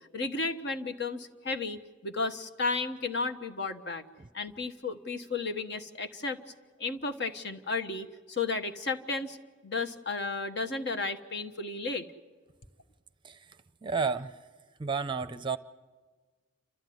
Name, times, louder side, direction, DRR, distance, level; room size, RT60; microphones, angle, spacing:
voice 1, 0.1-4.0 4.3-6.4 6.8-9.4 9.6-12.1, left 3 dB, 55° left, 7 dB, 1.3 m, -33 dB
voice 2, 13.8-14.4 14.8-15.6, right 5 dB, 25° right, 12 dB, 0.6 m, -31 dB
29.0 x 13.5 x 9.4 m, 1.4 s
head